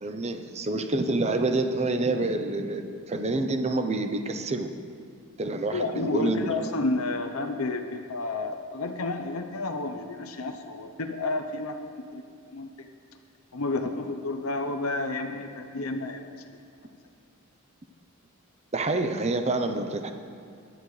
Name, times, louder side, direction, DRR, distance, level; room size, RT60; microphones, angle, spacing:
voice 1, 0.0-4.7 5.4-6.5 18.7-20.1, right 2 dB, 30° right, 7 dB, 0.7 m, -27 dB
voice 2, 5.7-12.2 12.5-12.9 13.5-16.2, left 2 dB, 80° left, 5 dB, 0.8 m, -31 dB
19.0 x 11.5 x 3.2 m, 2.4 s
head